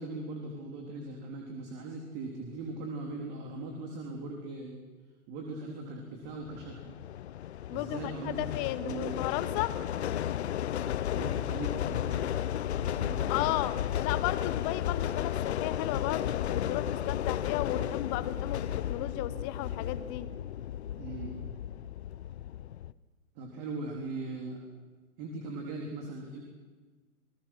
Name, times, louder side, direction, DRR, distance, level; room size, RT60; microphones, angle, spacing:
voice 1, 0.0-4.8 5.3-6.9 7.7-9.1 11.1-12.3 12.8-13.3 21.0-21.3 23.4-24.6 25.2-26.4, right 2 dB, 30° right, 1 dB, 3.8 m, -39 dB
sound 1, 6.4-22.9, left 11 dB, 50° left, 0.8 m, -33 dB
voice 2, 7.7-9.7 13.3-20.3, left 14 dB, 25° left, 15 dB, 1.0 m, -34 dB
28.5 x 20.0 x 6.1 m, 1.4 s
figure-of-eight pair, 120°, 43 cm